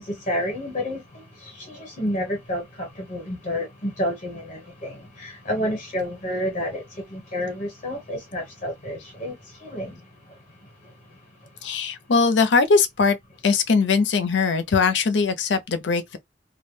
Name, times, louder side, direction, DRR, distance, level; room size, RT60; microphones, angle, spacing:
voice 1, 0.0-10.4 10.8-10.9, equal, 45° left, 1.0 m, -30 dB
voice 2, 11.6-13.2 13.4-16.2, left 4 dB, 80° left, 0.5 m, -20 dB
2.2 x 2.1 x 3.0 m
head